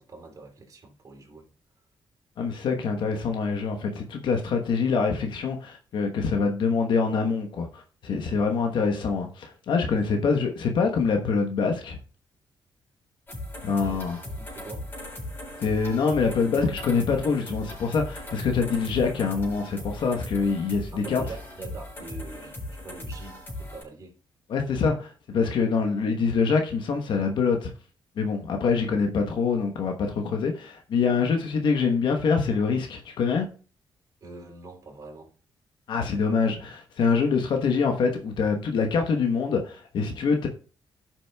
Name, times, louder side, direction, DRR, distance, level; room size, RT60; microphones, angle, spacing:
voice 1, 0.0-1.5 13.8-14.9 20.9-24.2 34.2-35.3, right 3 dB, 45° right, 3.1 m, -44 dB
voice 2, 2.4-12.0 13.6-14.2 15.6-21.2 24.5-27.7 28.2-33.5 35.9-40.5, left 5 dB, 70° left, 1.1 m, -25 dB
sound 1, 13.3-23.8, left 1 dB, 25° left, 4.4 m, -38 dB
16.5 x 6.1 x 2.3 m
cardioid pair, 100°, 8 cm